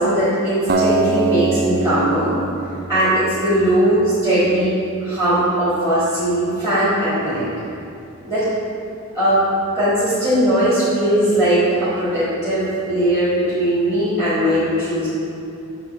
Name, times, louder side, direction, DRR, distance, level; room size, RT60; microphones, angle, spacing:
voice 1, 0.0-2.3 2.9-4.7 5.0-7.5 8.3-8.4 9.1-9.4 9.7-15.1, right 1 dB, 15° right, -13 dB, 1.6 m, -19 dB
Acoustic guitar, 0.7-3.9, right 3 dB, 45° right, 0.3 m, -23 dB
8.2 x 3.1 x 5.9 m, 2.7 s
head